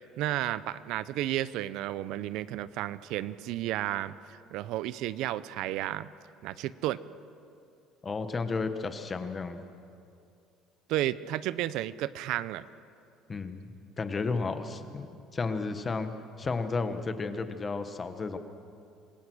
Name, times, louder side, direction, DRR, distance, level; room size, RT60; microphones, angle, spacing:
voice 1, 0.2-6.1 6.4-7.0 10.9-12.6, right 14 dB, 70° right, 16 dB, 0.6 m, -32 dB
voice 2, 8.0-9.6 13.3-15.1 15.3-16.1 16.4-18.4, left 4 dB, 25° left, 9 dB, 1.3 m, -32 dB
26.0 x 17.5 x 6.3 m, 2.5 s
cardioid pair, 130°, 0 cm